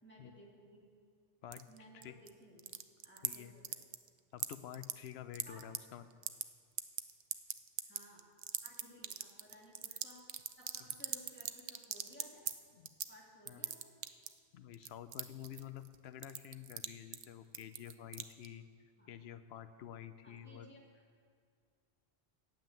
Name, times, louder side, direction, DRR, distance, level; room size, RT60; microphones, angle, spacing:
voice 1, 0.0-0.8 1.7-2.7 3.0-3.8 5.5-5.6 7.9-8.2 8.6-10.2 10.5-12.4 13.1-13.9 19.0-19.1 20.2-21.0, equal, 10° left, -4 dB, 2.2 m, -59 dB
sound 1, 1.5-2.3 2.6-3.4 3.6-4.1 4.4-5.8 6.1-6.4 6.8-12.5 12.9-13.1 13.5-14.4 14.7-16.0 16.2-16.9 17.1-17.2 17.5-18.5, right 10 dB, 70° right, 0.8 m, -39 dB
voice 2, 3.2-3.5 4.3-6.1 12.7-12.9 13.5-13.6 14.5-18.6 19.1-20.7, left 10 dB, 85° left, 11 dB, 0.8 m, -49 dB
9.2 x 7.5 x 9.1 m, 2.2 s
omnidirectional pair, 1.1 m